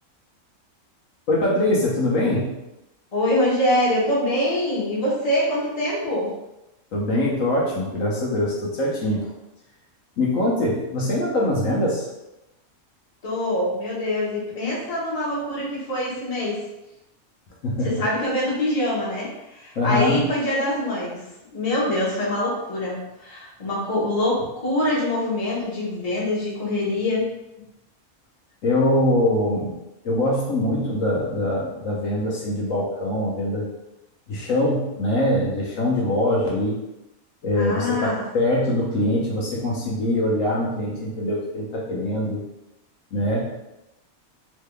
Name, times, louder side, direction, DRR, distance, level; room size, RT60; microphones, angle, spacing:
voice 1, 1.3-2.6 6.9-9.3 10.2-12.1 17.6-18.0 19.8-20.2 28.6-29.8 30.0-33.7 34.3-36.8 37.4-42.4 43.1-43.5, left 1 dB, 70° left, -4 dB, 1.1 m, -23 dB
voice 2, 3.1-6.3 13.2-16.6 17.8-19.3 19.5-21.2 21.5-27.3 37.5-38.2, left 1 dB, 30° left, -6 dB, 0.8 m, -24 dB
3.3 x 3.2 x 2.2 m, 0.92 s
omnidirectional pair, 1.5 m